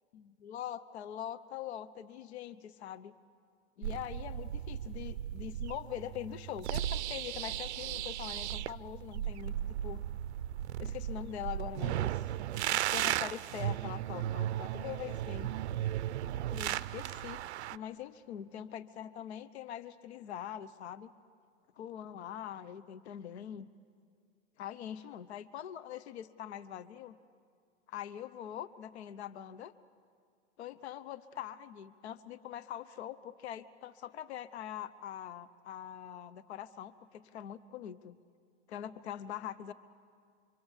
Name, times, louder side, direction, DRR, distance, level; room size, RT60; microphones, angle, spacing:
voice 1, 0.2-3.1 3.8-10.0 10.8-12.3 12.7-15.5 16.5-17.4 17.7-21.1 21.8-23.7 24.6-27.2 27.9-29.7 30.6-38.2 38.7-39.7, left 10 dB, 65° left, 14 dB, 0.9 m, -43 dB
sound 1, 3.8-17.8, right 12 dB, 70° right, 0.6 m, -36 dB
26.0 x 25.0 x 7.2 m, 2.2 s
supercardioid pair, 165°, 35 cm